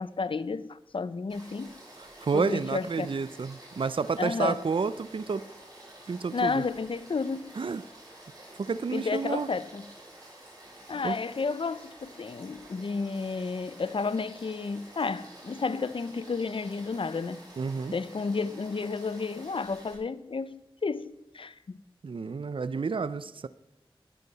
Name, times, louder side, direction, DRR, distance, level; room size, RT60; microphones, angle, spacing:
voice 1, 0.0-1.8 2.3-3.1 4.2-4.6 6.3-7.5 8.9-9.9 10.9-17.4 17.9-21.8, left 4 dB, 65° left, 0.6 m, -32 dB
Frog / Stream, 1.3-19.9, right 1 dB, 45° right, 6.4 m, -50 dB
voice 2, 2.0-5.5 6.1-6.6 7.6-7.8 8.6-9.5 11.0-11.2 17.6-17.9 22.0-23.5, right 5 dB, 65° right, 0.5 m, -30 dB
20.0 x 11.0 x 4.1 m
wide cardioid pair, 70°, 10 cm